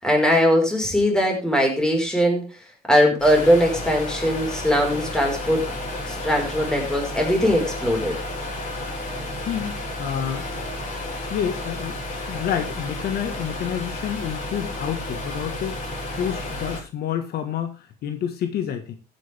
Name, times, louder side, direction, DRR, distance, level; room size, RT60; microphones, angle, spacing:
voice 1, 0.0-2.4 2.9-5.6 6.1-8.2, equal, 5° left, 1 dB, 5.4 m, -20 dB
sound 1, 3.2-16.8, left 1 dB, 50° left, 6.9 m, -32 dB
voice 2, 9.4-10.6 11.3-12.0 12.3-15.8 16.2-19.0, left 9 dB, 70° left, 7 dB, 1.8 m, -29 dB
15.0 x 9.2 x 3.7 m, 0.30 s
cardioid pair, 110°, 17 cm